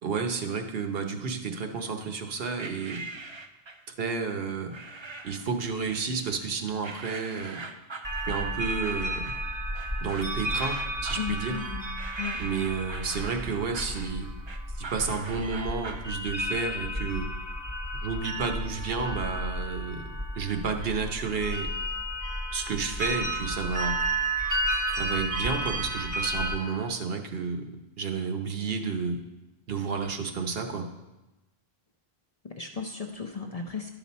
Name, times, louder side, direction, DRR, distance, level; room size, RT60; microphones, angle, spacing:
voice 1, 0.0-3.0 4.0-4.7 5.2-7.6 8.3-9.4 10.0-11.6 12.4-14.3 14.8-17.3 18.0-21.7 22.5-24.0 25.0-29.2 29.7-30.9, right 5 dB, 65° right, 5 dB, 1.0 m, -31 dB
sound 1, 2.6-3.9 4.7-5.5 5.9-6.5 6.8-16.1, right 3 dB, 40° right, 0.4 m, -42 dB
sound 2, 8.0-26.6, right 1 dB, 20° right, 1.0 m, -32 dB
voice 2, 11.2-11.9 12.2-12.6 32.4-33.9, left 6 dB, 45° left, 3 dB, 0.5 m, -35 dB
11.5 x 6.0 x 4.1 m, 1.0 s
omnidirectional pair, 1.1 m